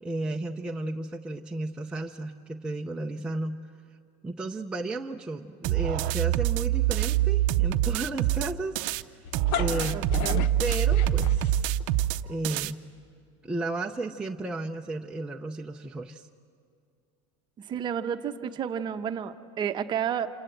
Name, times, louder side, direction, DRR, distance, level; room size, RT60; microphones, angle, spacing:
voice 1, 0.0-3.6 4.2-9.0 9.5-10.0 10.6-11.7 12.3-12.8 13.4-16.3, right 2 dB, 5° right, 1 dB, 0.6 m, -33 dB
sound 1, 5.6-9.0 9.3-12.7, right 13 dB, 60° right, 0.6 m, -25 dB
sound 2, 9.2-11.8, left 10 dB, 60° left, 0.9 m, -33 dB
voice 2, 9.9-10.5 12.2-12.3 17.6-20.3, right 8 dB, 30° right, 8 dB, 0.9 m, -31 dB
27.5 x 26.0 x 7.9 m, 2.3 s
cardioid pair, 155°, 16 cm